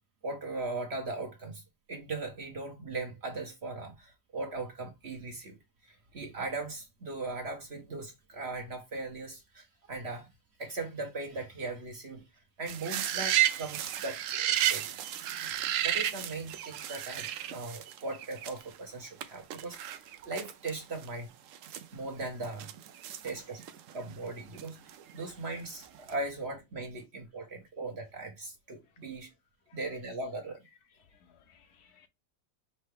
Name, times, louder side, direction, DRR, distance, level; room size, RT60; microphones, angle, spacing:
voice 1, 0.2-1.6 1.9-5.6 5.8-10.3 10.6-12.2 12.6-14.8 15.4-15.5 15.8-21.3 21.9-22.7 23.2-23.6 23.9-29.3 29.7-30.7, right 3 dB, 45° right, 1.1 m, -39 dB
sound 1, 12.7-18.8 19.2-19.3 19.5-20.7 21.0-21.1 21.5-24.0 24.6-25.5 25.8-26.1, right 11 dB, 70° right, 0.7 m, -32 dB
voice 2, 31.0-32.1, left 7 dB, 70° left, 1.2 m, -63 dB
5.5 x 2.8 x 3.3 m
omnidirectional pair, 1.8 m